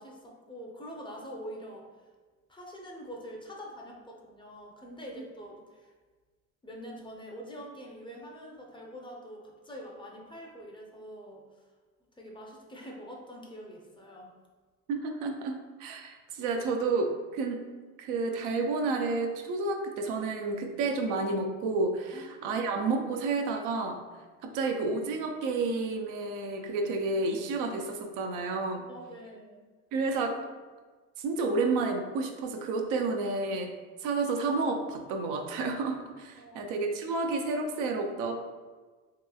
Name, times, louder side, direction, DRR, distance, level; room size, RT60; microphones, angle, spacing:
voice 1, 0.0-1.9 2.5-5.9 6.6-11.5 12.2-14.3 22.1-22.6 28.9-29.6 36.4-36.7, equal, 15° left, -1 dB, 0.5 m, -45 dB
voice 2, 14.9-17.7 18.0-24.0 24.4-28.9 29.9-30.4 31.2-33.7 34.0-38.3, right 3 dB, 80° right, 3 dB, 0.5 m, -30 dB
3.0 x 2.9 x 2.3 m, 1.4 s
supercardioid pair, 95°, 32 cm